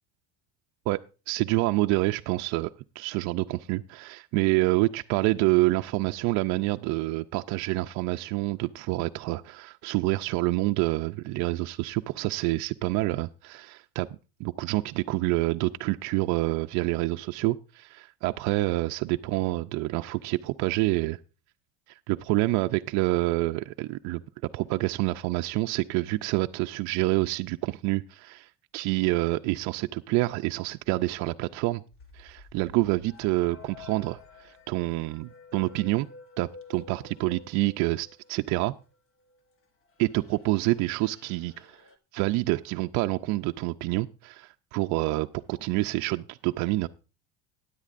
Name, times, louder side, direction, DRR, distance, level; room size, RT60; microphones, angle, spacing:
voice 1, 0.9-2.7 3.0-14.1 14.4-21.2 22.1-24.2 24.5-31.8 32.1-36.1 36.4-38.7 40.0-41.8 42.1-46.9, right 20 dB, 60° right, 7 dB, 0.5 m, -27 dB
sound 1, 31.9-38.5 38.8-39.5 39.8-42.0, left 4 dB, 40° left, 1.2 m, -51 dB
15.5 x 9.9 x 2.5 m, 0.32 s
supercardioid pair, 120°, 33 cm